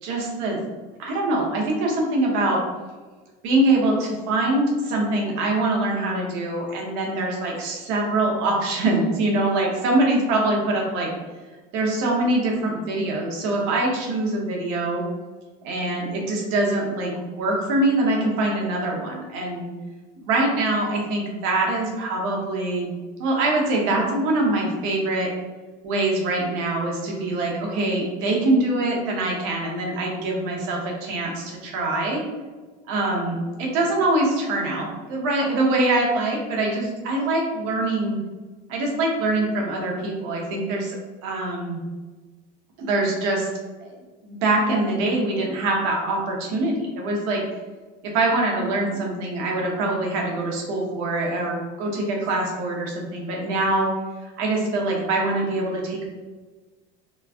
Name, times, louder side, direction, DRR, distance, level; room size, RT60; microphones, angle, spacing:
voice 1, 0.0-0.6 1.0-2.6 3.4-11.1 11.7-15.0 15.6-19.7 20.2-22.9 23.2-25.3 25.8-32.2 32.9-38.2 38.7-41.0 41.2-41.8 42.8-43.5 43.8-43.9 44.2-47.4 48.0-53.9 54.2-56.1, right 2 dB, 70° right, -1 dB, 0.9 m, -24 dB
3.1 x 2.3 x 2.4 m, 1.3 s
cardioid pair, 130°, 21 cm